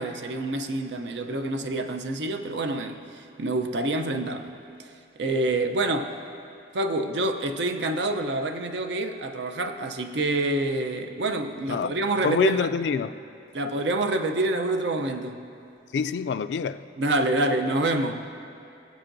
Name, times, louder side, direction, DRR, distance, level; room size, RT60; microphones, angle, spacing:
voice 1, 0.0-3.0 3.4-4.5 5.2-6.1 6.7-12.7 13.5-15.4 17.0-18.3, right 2 dB, 85° right, 0.6 m, -27 dB
voice 2, 12.2-13.1 15.9-16.8, left 6 dB, 80° left, 0.3 m, -25 dB
20.5 x 7.9 x 2.6 m
head